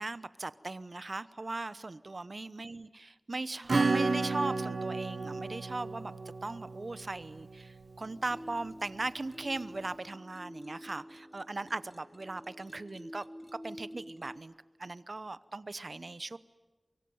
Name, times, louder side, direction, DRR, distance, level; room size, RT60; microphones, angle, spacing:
voice 1, 0.0-2.9 3.3-6.1 6.4-13.2 13.5-14.5 14.8-16.4, right 2 dB, 55° right, 15 dB, 0.8 m, -38 dB
Acoustic guitar / Strum, 3.7-8.0, right 3 dB, 85° right, 1.0 m, -32 dB
sound 1, 8.0-14.4, equal, 5° left, 2.6 m, -49 dB
24.0 x 23.5 x 9.4 m, 1.2 s
wide cardioid pair, 60°, 0 cm